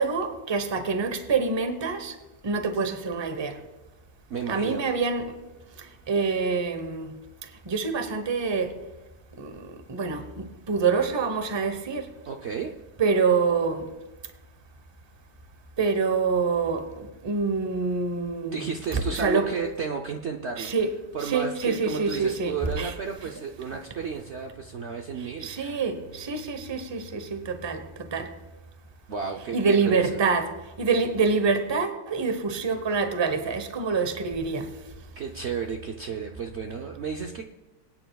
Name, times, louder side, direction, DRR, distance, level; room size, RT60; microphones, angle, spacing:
voice 1, 0.0-2.2 2.4-3.6 4.5-5.4 5.8-7.1 7.4-8.7 9.4-12.1 13.0-13.9 15.8-19.5 20.6-20.9 21.2-22.9 23.2-23.3 25.2-28.3 29.5-30.5 30.8-34.7, right 4 dB, 30° right, 8 dB, 0.5 m, -26 dB
voice 2, 4.3-4.8 12.2-12.7 18.4-20.7 21.1-25.8 29.1-30.2 35.2-37.4, right 6 dB, 85° right, 2 dB, 0.6 m, -33 dB
23.0 x 9.1 x 2.3 m, 1.1 s
omnidirectional pair, 2.0 m